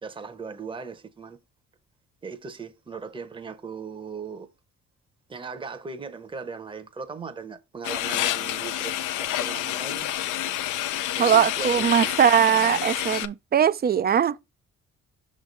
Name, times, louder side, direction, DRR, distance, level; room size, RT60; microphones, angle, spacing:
voice 1, 0.0-1.4 2.2-4.5 5.3-10.1 11.2-12.1, right 5 dB, 15° right, 0.8 m, -38 dB
sound 1, 7.8-13.3, left 12 dB, 85° left, 0.5 m, -28 dB
voice 2, 11.2-14.3, right 8 dB, 35° right, 0.4 m, -20 dB
6.1 x 3.2 x 5.2 m
cardioid pair, 90°, 30 cm